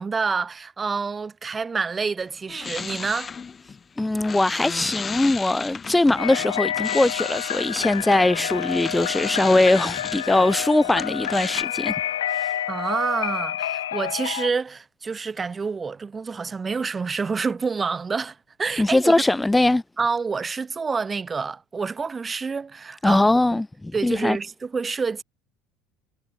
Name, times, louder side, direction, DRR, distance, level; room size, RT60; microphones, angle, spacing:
voice 1, 0.0-3.3 12.7-19.1 20.0-23.2 23.9-25.2, right 5 dB, 25° right, 6.6 m, -28 dB
sound 1, 2.2-11.6, left 5 dB, 30° left, 4.1 m, -35 dB
voice 2, 4.0-11.9 12.3-12.5 18.8-19.8 23.0-23.7 24.0-24.4, left 2 dB, 10° left, 0.8 m, -21 dB
sound 2, 6.2-14.5, left 11 dB, 80° left, 5.0 m, -29 dB
hypercardioid pair, 70°, 0 cm